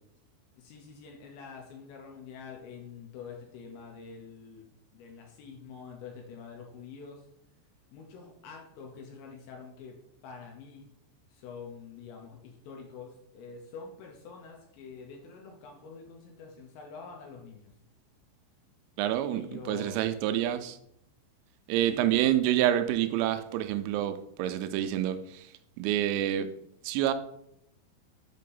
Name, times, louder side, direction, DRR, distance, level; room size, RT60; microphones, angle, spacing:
voice 1, 0.5-7.3 7.9-10.9 11.3-17.7 19.3-20.0 21.9-22.3, left 5 dB, 75° left, 0 dB, 2.8 m, -46 dB
voice 2, 19.0-20.8 21.7-25.5 25.8-26.5 26.8-27.1, right 12 dB, 90° right, 10 dB, 3.3 m, -28 dB
8.3 x 2.8 x 5.3 m, 0.75 s
omnidirectional pair, 5.9 m